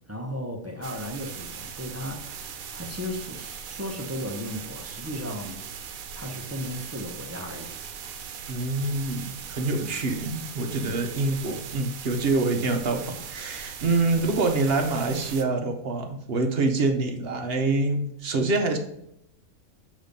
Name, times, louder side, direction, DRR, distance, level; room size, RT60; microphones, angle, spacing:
voice 1, 0.1-5.6 6.2-8.3 9.6-10.0 10.8-11.0 14.2-14.4, equal, 20° right, 1 dB, 0.5 m, -36 dB
sound 1, 0.8-15.4, right 7 dB, 85° right, 1.1 m, -39 dB
voice 2, 8.5-18.8, right 3 dB, 55° right, 4 dB, 0.8 m, -26 dB
6.8 x 3.2 x 5.1 m, 0.78 s
omnidirectional pair, 1.5 m